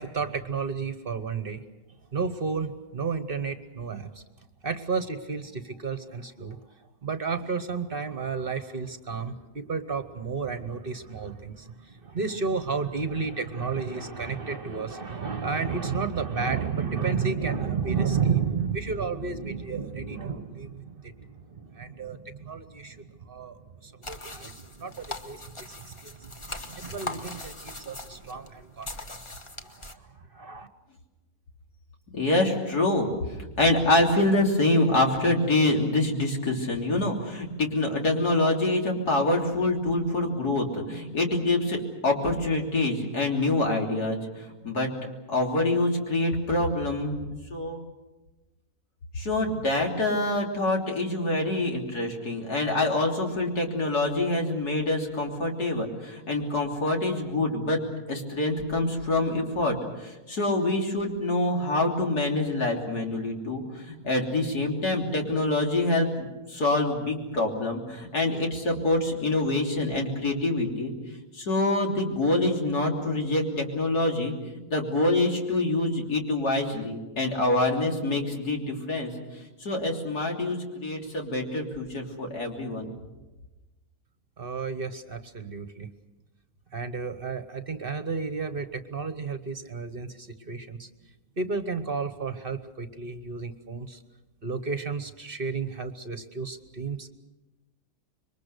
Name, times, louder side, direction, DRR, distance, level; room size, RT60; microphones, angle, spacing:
voice 1, 0.0-1.6 2.1-4.2 4.6-6.6 7.0-30.7 84.4-85.9 86.7-90.9 91.4-94.0 94.4-97.1, right 5 dB, 40° right, 10 dB, 1.2 m, -32 dB
sound 1, 24.0-29.9, left 2 dB, 20° left, 1.2 m, -40 dB
voice 2, 32.1-44.9 45.3-47.2 47.5-47.8 49.1-57.8 58.1-70.9 71.3-74.3 74.7-79.1 79.6-82.9, left 2 dB, 90° left, 1 dB, 3.8 m, -26 dB
27.0 x 23.0 x 6.7 m, 1.1 s
omnidirectional pair, 1.6 m